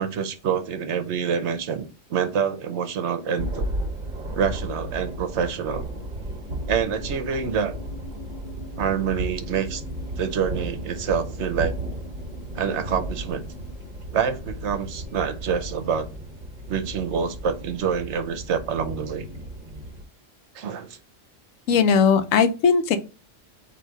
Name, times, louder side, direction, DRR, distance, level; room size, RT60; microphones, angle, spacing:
voice 1, 0.0-3.6 4.3-5.8 6.7-7.8 8.8-9.8 10.2-11.7 12.5-13.4 14.1-16.1 16.7-19.3 20.5-21.0, right 7 dB, 65° right, 9 dB, 0.9 m, -26 dB
Thunder, 3.4-20.0, right 1 dB, 40° right, 1.0 m, -34 dB
sound 1, 6.5-13.9, left 5 dB, 40° left, 0.6 m, -46 dB
voice 2, 21.7-23.0, left 6 dB, 80° left, 10 dB, 1.0 m, -18 dB
4.0 x 2.8 x 4.6 m, 0.32 s
omnidirectional pair, 1.3 m